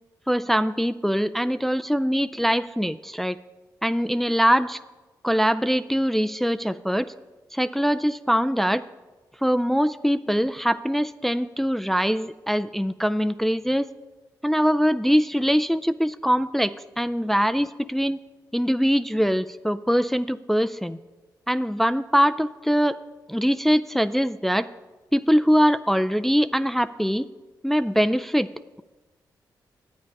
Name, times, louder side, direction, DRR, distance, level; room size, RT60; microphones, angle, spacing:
voice 1, 0.3-3.4 3.8-4.8 5.2-7.1 7.5-8.8 9.4-13.9 14.4-18.2 18.5-21.0 21.5-23.0 23.3-24.7 25.1-27.3 27.6-28.5, equal, 5° left, 12 dB, 0.3 m, -22 dB
9.7 x 8.7 x 5.3 m, 1.2 s
cardioid pair, 55°, 8 cm